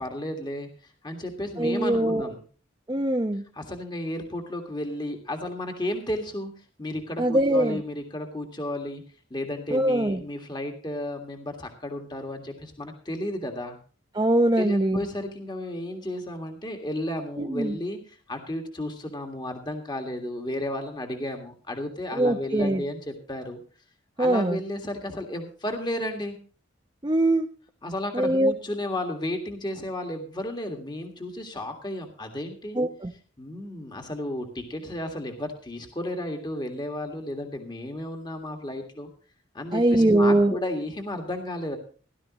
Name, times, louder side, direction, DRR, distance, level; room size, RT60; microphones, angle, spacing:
voice 1, 0.0-2.4 3.5-6.5 6.8-9.0 9.3-13.8 14.6-23.6 24.2-26.4 27.8-32.8 33.4-39.1 39.5-41.8, left 1 dB, 25° left, 4 dB, 1.8 m, -33 dB
voice 2, 1.6-2.3 2.9-3.4 7.2-7.8 9.7-10.2 14.1-15.0 17.4-17.8 22.1-22.8 24.2-24.6 27.0-27.5 28.1-28.5 32.8-33.1 39.7-40.5, right 1 dB, 20° right, 2 dB, 0.7 m, -22 dB
17.0 x 12.0 x 3.0 m, 0.39 s
head